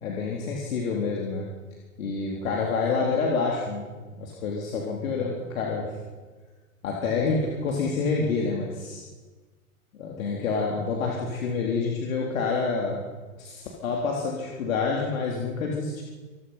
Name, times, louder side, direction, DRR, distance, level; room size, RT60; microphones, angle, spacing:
voice 1, 0.0-1.5 2.0-3.9 4.2-5.9 6.8-9.0 10.0-13.0 13.4-16.0, left 4 dB, 65° left, -1 dB, 3.8 m, -28 dB
26.5 x 20.5 x 5.8 m, 1.4 s
figure-of-eight pair, 100°, 43 cm